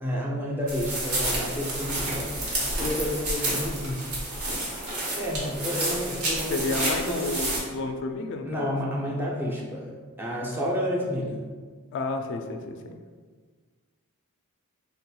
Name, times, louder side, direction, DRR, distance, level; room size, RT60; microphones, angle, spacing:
voice 1, 0.0-4.1 4.5-4.6 5.1-6.6 7.0-7.3 8.5-11.4, equal, 10° right, -3 dB, 0.5 m, -30 dB
sound 1, 0.7-7.6, right 1 dB, 80° right, 1.0 m, -30 dB
voice 2, 6.5-8.8 11.9-13.0, left 3 dB, 55° left, 6 dB, 0.3 m, -31 dB
3.4 x 2.9 x 2.2 m, 1.5 s
head